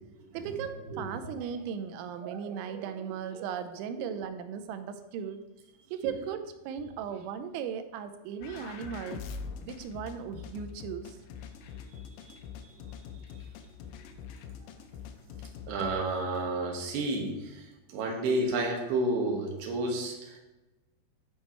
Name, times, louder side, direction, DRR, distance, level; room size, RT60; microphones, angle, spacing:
voice 1, 0.3-5.4 5.9-9.2 9.6-11.2, right 7 dB, 85° right, 9 dB, 3.0 m, -37 dB
sound 1, 8.4-16.0, left 6 dB, 80° left, 2.7 m, -44 dB
voice 2, 15.7-17.7 17.9-20.4, right 2 dB, 65° right, 0 dB, 3.0 m, -30 dB
10.0 x 4.4 x 4.4 m, 1.0 s
omnidirectional pair, 5.3 m